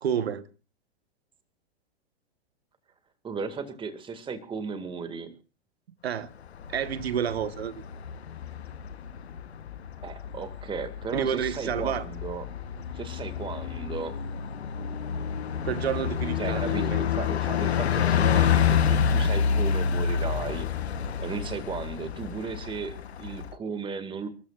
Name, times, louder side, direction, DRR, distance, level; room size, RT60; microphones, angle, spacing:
voice 1, 0.0-0.4 6.0-6.3 6.7-7.8 11.1-12.1 14.8-14.9 15.6-17.0, right 8 dB, 75° right, 1.2 m, -29 dB
voice 2, 3.2-5.3 10.0-12.5 12.9-14.2 16.4-20.7 21.2-24.3, right 5 dB, 15° right, 1.9 m, -35 dB
Bus, 6.5-23.5, left 7 dB, 80° left, 1.0 m, -28 dB
29.5 x 13.0 x 2.4 m
hypercardioid pair, 115°, 32 cm